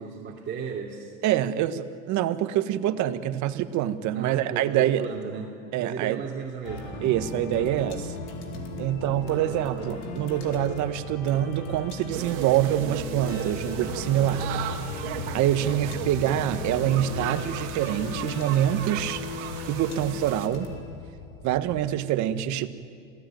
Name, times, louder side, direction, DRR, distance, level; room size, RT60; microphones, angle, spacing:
voice 1, 0.0-1.2 4.1-7.1 9.0-10.0, right 6 dB, 30° right, -4 dB, 3.0 m, -36 dB
voice 2, 1.2-5.1 5.7-6.2 7.0-8.1 8.8-14.5 15.3-19.2 19.7-20.7 21.4-22.7, right 12 dB, 50° right, 11 dB, 1.4 m, -25 dB
sound 1, 6.6-21.9, left 3 dB, 70° left, 4.1 m, -36 dB
sound 2, 12.1-20.5, right 11 dB, 70° right, 2.1 m, -36 dB
27.5 x 17.0 x 9.2 m, 2.3 s
supercardioid pair, 120°, 37 cm